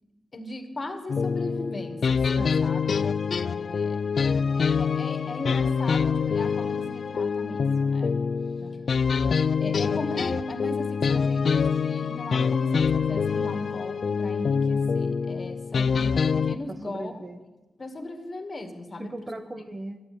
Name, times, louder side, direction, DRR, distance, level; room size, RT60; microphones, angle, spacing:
voice 1, 0.3-2.8 3.3-4.1 4.5-8.2 9.6-17.1 17.8-19.3, left 1 dB, 40° left, 6 dB, 2.1 m, -38 dB
sound 1, 1.1-16.6, left 6 dB, 60° left, 0.4 m, -25 dB
voice 2, 2.4-2.8 8.6-9.0 16.7-17.4 19.0-20.0, right 1 dB, 30° right, 8 dB, 1.2 m, -39 dB
11.5 x 9.6 x 9.4 m, 1.1 s
supercardioid pair, 50°, 0 cm